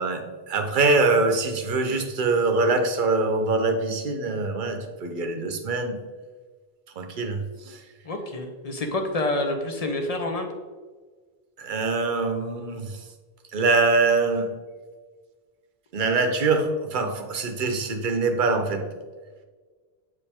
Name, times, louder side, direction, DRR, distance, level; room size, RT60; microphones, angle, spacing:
voice 1, 0.0-6.0 7.0-7.8 11.6-13.0 13.5-14.5 15.9-18.9, right 3 dB, 55° right, 5 dB, 1.0 m, -24 dB
voice 2, 8.0-10.5, left 2 dB, 40° left, 4 dB, 1.0 m, -28 dB
8.2 x 5.2 x 3.5 m, 1.4 s
omnidirectional pair, 1.0 m